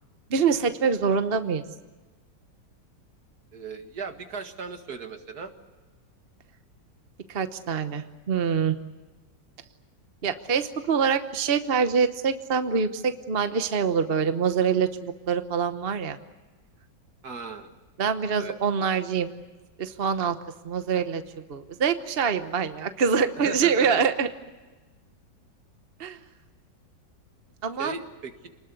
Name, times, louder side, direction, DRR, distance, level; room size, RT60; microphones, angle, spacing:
voice 1, 0.3-1.6 7.3-8.8 10.2-16.2 18.0-19.3 19.8-20.4 20.6-21.2 21.5-24.3 26.0-26.2 27.6-27.9, right 6 dB, 40° right, 9 dB, 1.0 m, -25 dB
voice 2, 3.5-5.5 17.2-17.7 18.4-18.5 23.4-24.0 27.8-28.5, right 4 dB, 60° right, 6 dB, 2.3 m, -37 dB
28.0 x 20.5 x 8.3 m, 1.2 s
omnidirectional pair, 1.9 m